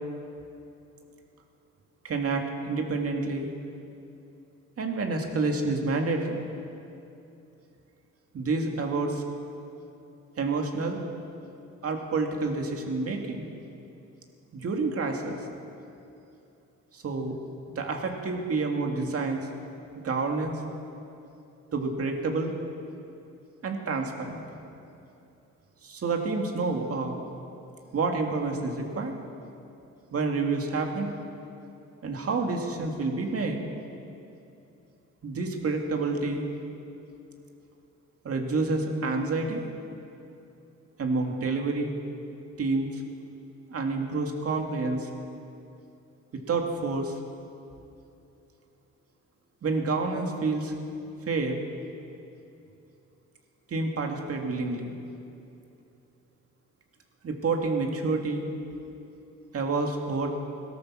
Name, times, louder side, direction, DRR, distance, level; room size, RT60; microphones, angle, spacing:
voice 1, 2.0-3.5 4.8-6.5 8.3-9.2 10.4-11.0 11.8-13.4 14.5-15.4 16.9-17.4 17.7-19.5 19.9-20.6 21.7-22.5 23.6-24.5 25.8-27.2 27.9-29.2 30.1-31.1 32.0-33.6 35.2-36.5 38.2-39.6 41.0-41.9 42.6-43.0 43.7-45.1 46.5-47.2 49.6-50.7 51.3-51.6 53.7-55.0 57.2-58.5 59.5-60.4, right 3 dB, 50° right, 3 dB, 2.2 m, -28 dB
17.0 x 13.5 x 6.2 m, 2.7 s
cardioid pair, 90°, 30 cm